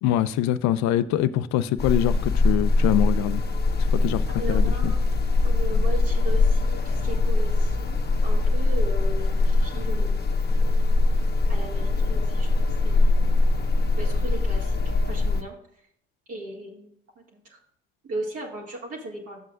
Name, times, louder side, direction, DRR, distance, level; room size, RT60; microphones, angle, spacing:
voice 1, 0.0-3.4 3.9-4.9, left 12 dB, 65° left, 0.6 m, -24 dB
sound 1, 1.8-15.4, left 3 dB, 35° left, 1.3 m, -22 dB
voice 2, 4.3-5.0 5.4-10.5 11.5-12.5 12.8-13.2 14.0-14.8 15.1-15.6 16.3-17.6 18.0-19.4, right 1 dB, 50° right, 2.3 m, -37 dB
12.0 x 7.5 x 2.5 m
hypercardioid pair, 50°, 30 cm